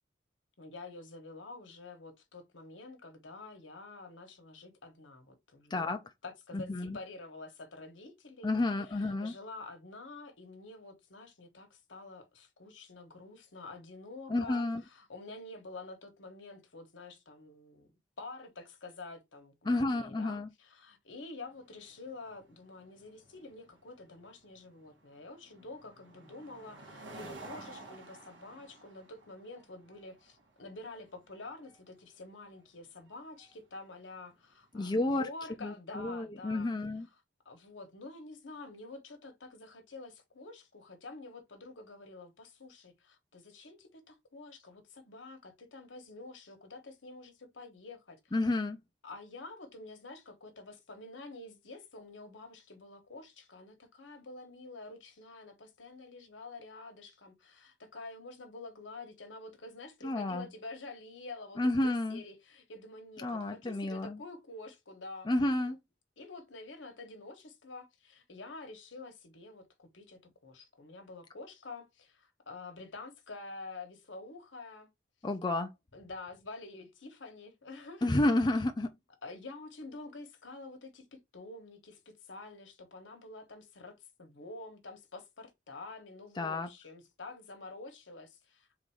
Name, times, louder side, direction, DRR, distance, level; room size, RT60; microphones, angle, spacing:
voice 1, 0.6-6.0 6.2-8.5 8.9-17.9 18.2-36.7 37.4-48.3 49.0-65.8 66.2-74.9 75.9-78.1 79.2-88.7, left 3 dB, 80° left, 1.2 m, -48 dB
voice 2, 6.5-7.0 8.4-9.3 14.3-14.8 19.7-20.5 34.7-35.2 35.6-37.1 48.3-48.8 60.0-60.5 61.6-62.2 63.2-64.2 65.3-65.8 75.2-75.7 78.0-78.9 86.4-86.7, left 2 dB, 25° left, 0.5 m, -30 dB
sound 1, 21.5-35.0, right 2 dB, 85° right, 1.6 m, -54 dB
3.8 x 2.6 x 4.6 m
head